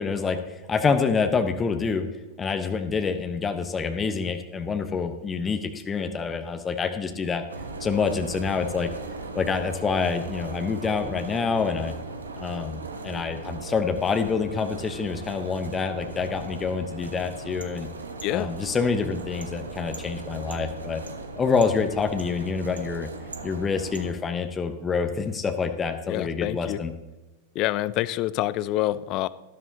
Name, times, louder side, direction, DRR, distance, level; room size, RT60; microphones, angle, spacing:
voice 1, 0.0-2.1 2.4-7.4 7.8-8.9 9.3-11.9 12.4-17.9 18.3-21.0 21.4-23.1 23.4-26.9, left 5 dB, 20° left, 7 dB, 0.9 m, -27 dB
sound 1, 7.5-24.1, right 3 dB, 75° right, 1.1 m, -38 dB
voice 2, 26.1-26.8 27.5-29.3, left 15 dB, 40° left, 18 dB, 0.4 m, -27 dB
13.0 x 13.0 x 2.8 m, 1.1 s
figure-of-eight pair, 90°, 0 cm